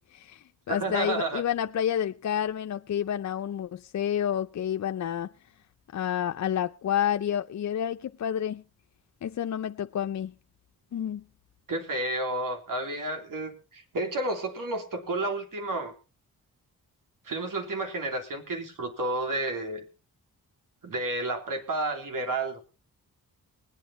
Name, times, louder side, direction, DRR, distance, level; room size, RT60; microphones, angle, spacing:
voice 1, 0.1-5.3 5.9-8.6 9.2-10.3 10.9-11.2, left 9 dB, 55° left, 0.6 m, -29 dB
voice 2, 0.7-1.4 11.7-15.9 17.2-19.8 20.8-22.6, right 2 dB, 65° right, 3.1 m, -31 dB
20.0 x 9.2 x 4.2 m
cardioid pair, 65°, 35 cm